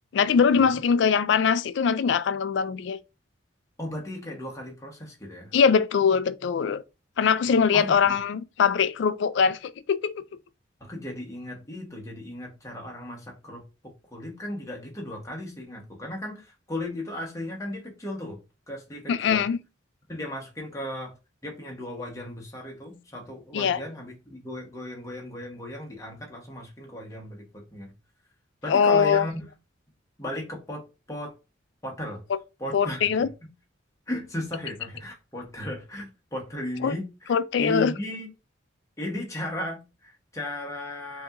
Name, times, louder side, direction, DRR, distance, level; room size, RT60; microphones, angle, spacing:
voice 1, 0.1-3.0 5.5-6.8 7.2-10.2 19.1-19.6 23.5-23.8 28.7-29.3 32.7-33.3 36.8-36.9 37.3-37.9, left 6 dB, 65° left, 0.3 m, -22 dB
voice 2, 3.8-5.5 7.5-8.1 10.8-18.4 18.7-19.5 20.1-21.1 21.4-27.9 28.6-29.5 30.2-31.3 31.8-32.2 32.6-33.3 34.1-38.3 39.0-41.2, left 1 dB, 15° left, 1.0 m, -36 dB
5.1 x 2.9 x 2.5 m
head